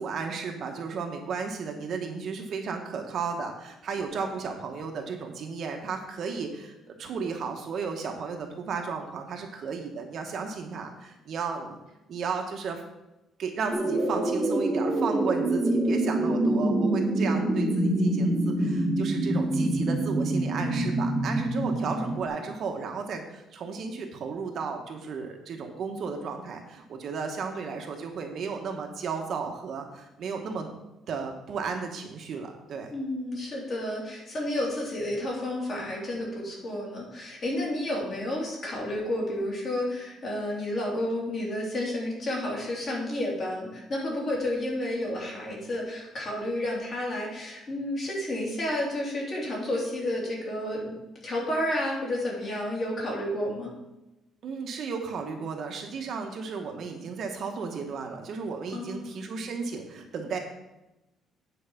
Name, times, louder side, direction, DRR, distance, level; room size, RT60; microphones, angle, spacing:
voice 1, 0.0-11.8 12.1-12.8 13.4-30.7 31.1-32.9 54.4-60.4, right 5 dB, 45° right, 3 dB, 1.0 m, -34 dB
sound 1, 13.7-22.3, right 1 dB, 15° right, 1.0 m, -26 dB
voice 2, 32.9-50.9 51.2-53.7 58.7-59.2, left 1 dB, 35° left, -3 dB, 2.9 m, -31 dB
9.0 x 4.7 x 7.0 m, 0.97 s
cardioid pair, 180°, 0 cm